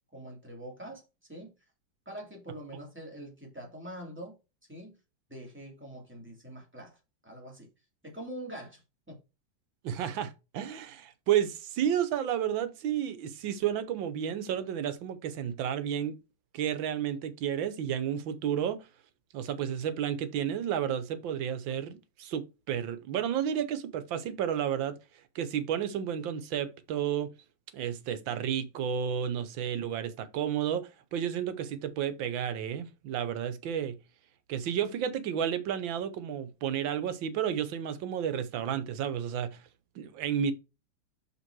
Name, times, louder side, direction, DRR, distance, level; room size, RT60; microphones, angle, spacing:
voice 1, 0.1-1.0 1.3-1.5 2.1-4.4 4.7-5.0 5.3-7.0 7.2-7.7 8.0-8.8 9.1-9.2, right 1 dB, 5° right, 2.6 m, -44 dB
voice 2, 9.8-16.2 16.5-18.8 19.3-25.0 25.3-27.3 27.7-33.9 34.5-39.6 39.9-40.5, right 9 dB, 80° right, 1.6 m, -31 dB
5.6 x 5.3 x 4.6 m
omnidirectional pair, 2.1 m